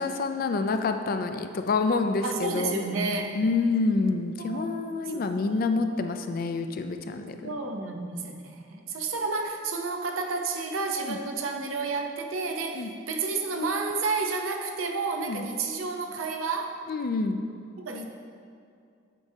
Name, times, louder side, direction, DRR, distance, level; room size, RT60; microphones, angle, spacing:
voice 1, 0.0-2.8 3.3-7.5 11.0-11.2 12.7-12.9 15.2-15.4 16.9-17.4, left 3 dB, 45° left, 7 dB, 0.3 m, -27 dB
voice 2, 2.2-3.4 4.4-4.7 5.1-5.8 7.4-16.8 17.8-18.1, right 3 dB, 80° right, 3 dB, 0.6 m, -31 dB
8.1 x 4.8 x 2.7 m, 2.4 s
head